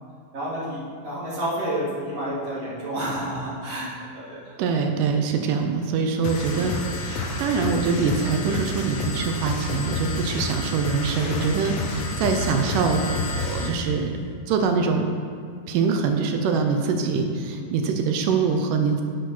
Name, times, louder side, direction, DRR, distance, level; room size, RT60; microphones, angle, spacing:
voice 1, 0.3-3.9 4.3-4.5 10.6-10.7 11.2-11.5 12.2-12.3 17.3-17.6, right 1 dB, 45° right, -8 dB, 2.8 m, -30 dB
voice 2, 4.6-13.1 13.4-14.1 14.5-15.1 15.7-19.0, right 5 dB, 80° right, 4 dB, 1.9 m, -24 dB
sound 1, 6.2-13.8, left 2 dB, 90° left, 1.4 m, -29 dB
10.5 x 5.0 x 5.9 m, 2.3 s
omnidirectional pair, 4.4 m